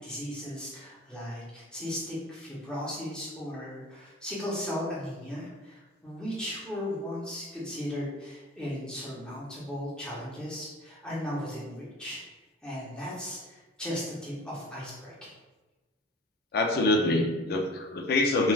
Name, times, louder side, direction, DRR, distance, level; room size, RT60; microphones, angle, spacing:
voice 1, 0.0-12.2 12.6-15.3, left 1 dB, 5° left, -8 dB, 0.8 m, -36 dB
voice 2, 16.5-18.5, left 2 dB, 55° left, 2 dB, 0.4 m, -25 dB
3.2 x 2.4 x 2.3 m, 1.2 s
head